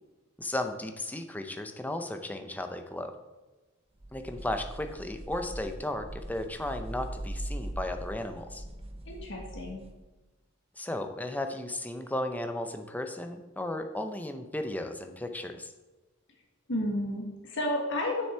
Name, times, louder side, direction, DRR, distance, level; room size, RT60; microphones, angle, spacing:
voice 1, 0.4-3.1 4.1-8.6 10.8-15.7, left 1 dB, 10° left, 6 dB, 0.6 m, -35 dB
sound 1, 4.0-10.0, right 1 dB, 30° right, 0.8 m, -41 dB
voice 2, 9.0-9.8 16.7-18.3, left 1 dB, 65° left, 0 dB, 1.6 m, -32 dB
9.3 x 6.8 x 4.5 m, 1.2 s
head